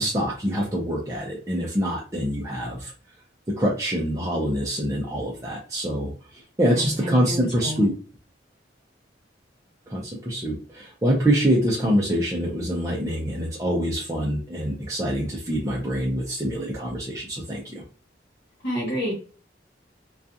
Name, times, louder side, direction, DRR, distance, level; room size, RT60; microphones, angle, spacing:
voice 1, 0.0-2.9 3.5-6.1 6.6-7.9 9.9-17.8, equal, 20° right, -4 dB, 0.5 m, -25 dB
voice 2, 6.7-7.9 18.6-19.1, equal, 65° left, -4 dB, 1.2 m, -29 dB
2.4 x 2.3 x 2.7 m, 0.39 s
head